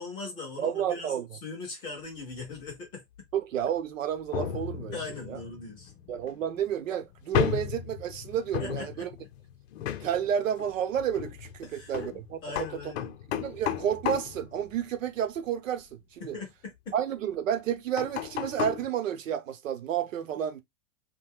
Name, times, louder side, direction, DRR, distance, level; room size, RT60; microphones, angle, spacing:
voice 1, 0.0-1.2 1.4-3.0 4.9-5.9 8.6-9.1 11.6-12.1 12.4-13.1 16.2-16.9, left 3 dB, 15° left, 0.4 m, -40 dB
voice 2, 0.6-1.4 3.3-5.0 5.3-5.4 6.1-9.1 10.0-12.4 13.4-16.4 16.9-20.6, right 9 dB, 90° right, 0.8 m, -31 dB
sound 1, 2.4-2.7 3.2-3.3 3.6-3.7 4.3-15.4 18.0-18.9, left 11 dB, 60° left, 0.6 m, -35 dB
2.3 x 2.2 x 3.4 m
hypercardioid pair, 150°, 38 cm